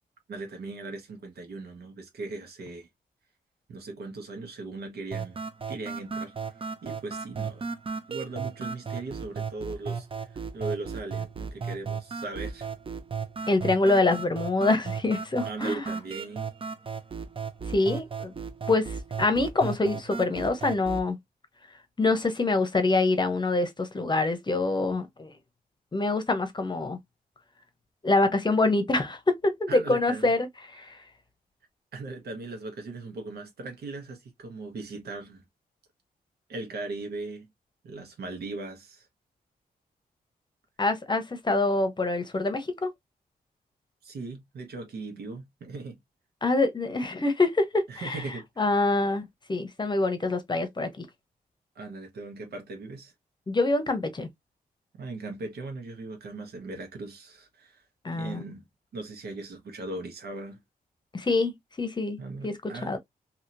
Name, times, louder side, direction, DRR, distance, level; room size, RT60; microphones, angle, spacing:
voice 1, 0.3-2.9 3.7-5.4 5.7-6.3 6.8-7.7 8.1-12.7 15.4-16.5 29.7-30.3 30.9-31.0 31.9-35.4 36.5-37.5 37.8-39.1 44.0-46.0 47.9-48.4 51.7-53.1 54.9-57.8 58.1-58.6 58.9-60.6 62.2-63.0, right 3 dB, 90° right, 1.2 m, -38 dB
sound 1, 5.1-21.1, right 5 dB, 35° right, 0.6 m, -35 dB
voice 2, 13.5-15.9 17.7-18.3 18.7-18.9 19.2-21.2 22.0-25.3 25.9-27.0 28.0-30.5 30.7-30.9 40.8-42.9 46.4-48.2 48.6-49.2 49.5-51.1 53.5-54.3 58.0-58.4 61.1-63.0, left 2 dB, 30° left, 0.8 m, -25 dB
2.8 x 2.8 x 2.6 m
cardioid pair, 80°, 16 cm